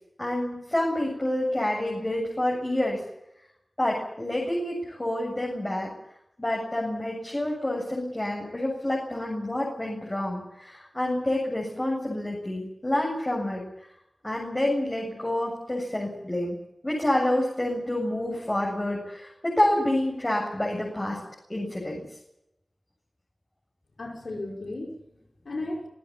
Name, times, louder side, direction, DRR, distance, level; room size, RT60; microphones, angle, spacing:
voice 1, 0.2-3.0 3.8-5.9 6.4-13.6 14.2-16.6 16.8-21.2 21.5-22.0, left 1 dB, 25° left, -2 dB, 7.8 m, -28 dB
voice 2, 24.0-25.9, left 2 dB, 75° left, 1 dB, 5.6 m, -35 dB
27.0 x 15.5 x 8.9 m, 0.84 s
wide cardioid pair, 65°, 0 cm